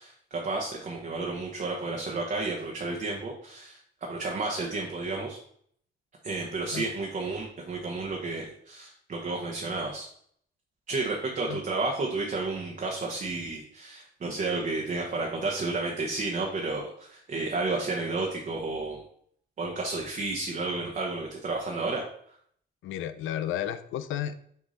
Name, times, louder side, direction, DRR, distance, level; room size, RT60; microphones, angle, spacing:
voice 1, 0.0-5.4 6.2-10.1 10.9-19.0 19.6-22.0, right 3 dB, 40° right, -1 dB, 1.2 m, -32 dB
voice 2, 22.8-24.4, left 10 dB, 85° left, 12 dB, 0.6 m, -32 dB
6.5 x 3.5 x 4.1 m, 0.63 s
cardioid pair, 90°, 20 cm